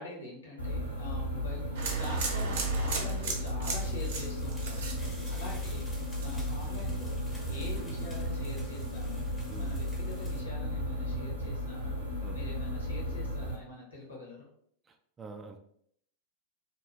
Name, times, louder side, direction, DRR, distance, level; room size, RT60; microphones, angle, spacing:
voice 1, 0.0-5.9 6.2-9.3 9.6-12.0 12.3-14.5, left 2 dB, 75° left, -2 dB, 1.1 m, -45 dB
sound 1, 0.6-13.5, equal, 90° left, 0.8 m, -34 dB
sound 2, 1.7-5.8 6.1-6.6, right 5 dB, 55° right, 0.6 m, -35 dB
sound 3, 3.8-10.4, left 1 dB, 10° left, 0.6 m, -53 dB
voice 2, 14.9-15.6, right 4 dB, 20° right, 4 dB, 0.3 m, -47 dB
2.8 x 2.3 x 2.7 m, 0.67 s
figure-of-eight pair, 90°, 0 cm